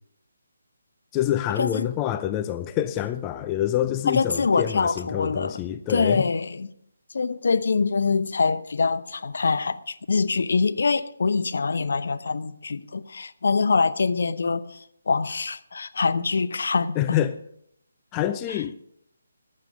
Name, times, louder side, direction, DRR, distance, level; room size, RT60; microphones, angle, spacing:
voice 1, 1.1-6.2 17.0-17.3 18.1-18.8, left 12 dB, 15° left, 0.4 m, -26 dB
voice 2, 4.1-5.6 5.9-6.7 7.1-17.0 18.5-18.6, left 4 dB, 55° left, 0.7 m, -24 dB
15.0 x 9.9 x 5.2 m
figure-of-eight pair, 145°, 0 cm